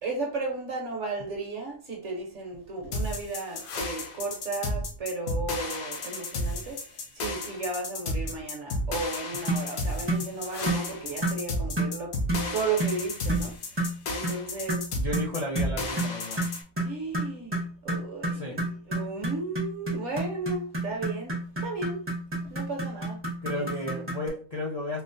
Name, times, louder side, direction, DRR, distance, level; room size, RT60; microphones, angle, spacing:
voice 1, 0.0-12.1 12.5-13.7 14.1-14.9 16.8-21.3 21.6-22.0 22.4-23.2 23.5-24.1, right 3 dB, 55° right, 1.0 m, -34 dB
sound 1, 2.9-16.6, left 1 dB, 70° left, 1.1 m, -33 dB
sound 2, 9.5-9.7 10.1-10.3 10.7-10.9 11.2-11.4 11.8-12.0 12.3-12.5 12.8-13.0 13.3-13.5 13.8-14.0 14.2-14.4 14.7-24.3, right 1 dB, 15° right, 0.5 m, -30 dB
voice 2, 14.9-16.5 18.3-18.6 23.4-25.0, left 1 dB, 35° left, 0.6 m, -33 dB
4.3 x 2.0 x 2.6 m
omnidirectional pair, 1.6 m